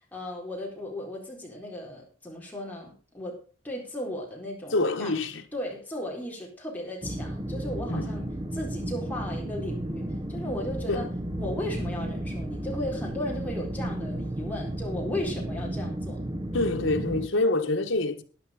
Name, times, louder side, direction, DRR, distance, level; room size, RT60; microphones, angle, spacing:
voice 1, 0.0-5.2 5.5-8.3 8.5-16.2, left 1 dB, 10° left, 4.1 m, -36 dB
voice 2, 4.7-5.4 7.9-8.1 10.9-11.1 16.5-18.2, left 2 dB, 85° left, 1.4 m, -26 dB
sound 1, 7.0-17.3, right 1 dB, 25° right, 1.1 m, -33 dB
12.0 x 10.5 x 5.1 m
head